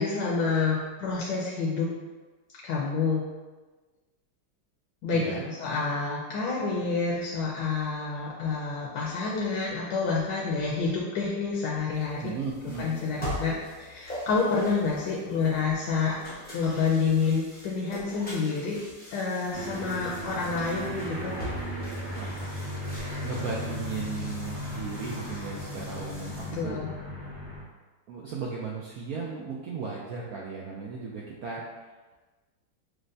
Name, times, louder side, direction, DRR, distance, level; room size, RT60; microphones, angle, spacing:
voice 1, 0.0-1.9 2.6-3.2 5.0-12.3 12.8-16.2 16.5-18.8 19.1-21.3 26.6-26.9, left 4 dB, 75° left, -4 dB, 1.2 m, -28 dB
voice 2, 5.1-5.4 12.2-12.9 22.1-22.4 23.2-26.8 28.1-31.6, right 5 dB, 80° right, -3 dB, 0.8 m, -36 dB
sound 1, 11.9-26.6, equal, 10° left, 0.4 m, -43 dB
Aircraft, 19.5-27.6, equal, 65° right, 1.9 m, -36 dB
6.3 x 2.1 x 2.6 m, 1.3 s
omnidirectional pair, 2.0 m